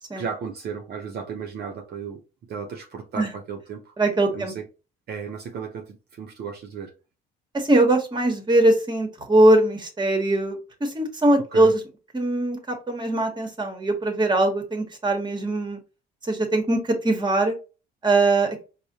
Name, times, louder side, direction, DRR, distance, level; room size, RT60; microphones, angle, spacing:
voice 1, 0.1-2.2 2.5-3.9 4.3-4.6 5.1-6.9 11.5-11.7, right 6 dB, 55° right, 0.6 m, -34 dB
voice 2, 4.0-4.5 7.5-11.8 12.1-15.8 16.3-17.5 18.0-18.6, right 2 dB, 25° right, 1.1 m, -21 dB
4.7 x 2.1 x 2.7 m
cardioid pair, 100°, 19 cm